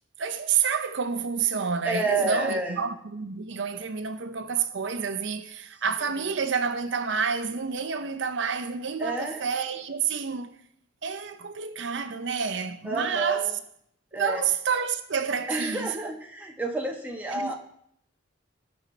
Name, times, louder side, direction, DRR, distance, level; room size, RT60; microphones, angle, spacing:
voice 1, 0.2-10.5 11.0-13.5 14.1-15.9 17.3-17.5, right 6 dB, 65° right, 0.6 m, -29 dB
voice 2, 1.8-2.8 6.0-6.3 9.0-9.4 12.8-13.5 14.1-14.4 15.5-17.6, right 3 dB, 10° right, 1.1 m, -29 dB
18.0 x 6.2 x 3.3 m
head